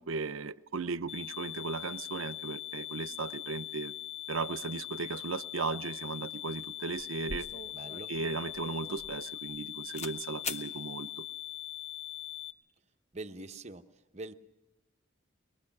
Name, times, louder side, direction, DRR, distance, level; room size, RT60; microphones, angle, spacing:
voice 1, 0.0-3.9 4.3-7.5 8.1-11.3, right 4 dB, 80° right, 15 dB, 0.7 m, -36 dB
sound 1, 1.1-12.5, left 14 dB, 85° left, 1.3 m, -42 dB
sound 2, 6.7-6.8 7.0-9.6 9.9-10.2 10.4-10.7, left 4 dB, 35° left, 1.1 m, -42 dB
voice 2, 7.7-8.1 13.1-13.8 14.1-14.3, right 2 dB, 30° right, 7 dB, 0.9 m, -43 dB
24.0 x 21.5 x 6.0 m, 1.1 s
head